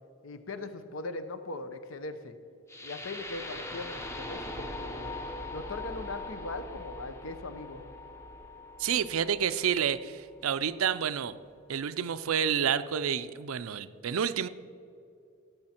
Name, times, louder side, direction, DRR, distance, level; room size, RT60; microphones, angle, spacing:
voice 1, 0.2-2.3 2.8-5.1 5.5-7.8, left 2 dB, 70° left, 10 dB, 0.8 m, -40 dB
sound 1, 2.7-10.7, left 2 dB, 15° left, 0.7 m, -41 dB
voice 2, 8.8-11.3 11.7-14.5, right 8 dB, 90° right, 13 dB, 0.5 m, -29 dB
17.0 x 8.1 x 4.4 m, 2.5 s
head